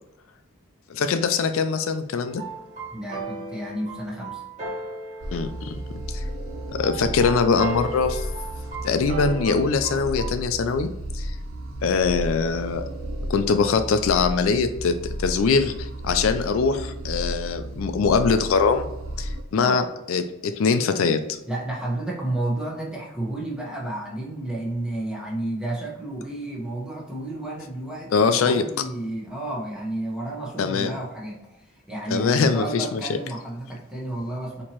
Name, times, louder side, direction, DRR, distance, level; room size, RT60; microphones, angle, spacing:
voice 1, 0.9-2.4 5.3-5.8 6.1-6.2 6.7-8.3 8.8-10.9 11.1-11.4 11.8-12.8 13.3-18.9 19.2-21.4 28.1-28.7 30.6-30.9 32.1-33.0, left 5 dB, 70° left, 9 dB, 0.3 m, -22 dB
sound 1, 2.3-10.3, right 2 dB, 35° right, 1.5 m, -36 dB
voice 2, 2.9-4.4 19.5-19.8 21.5-34.6, right 1 dB, 5° right, -4 dB, 0.9 m, -31 dB
sound 2, 5.2-19.4, right 1 dB, 65° right, 0.6 m, -33 dB
4.4 x 2.9 x 2.9 m, 0.92 s
head